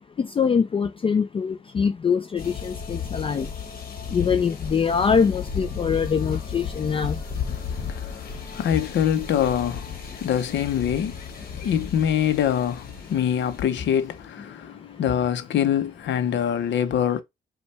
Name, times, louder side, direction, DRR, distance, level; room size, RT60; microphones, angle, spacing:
voice 1, 0.2-3.5 4.1-7.1, left 6 dB, 30° left, 0.4 m, -23 dB
sound 1, 2.4-14.1, left 7 dB, 50° left, 1.3 m, -34 dB
voice 2, 7.5-17.2, left 9 dB, 65° left, 0.7 m, -25 dB
5.3 x 2.3 x 3.3 m
cardioid pair, 90°, 20 cm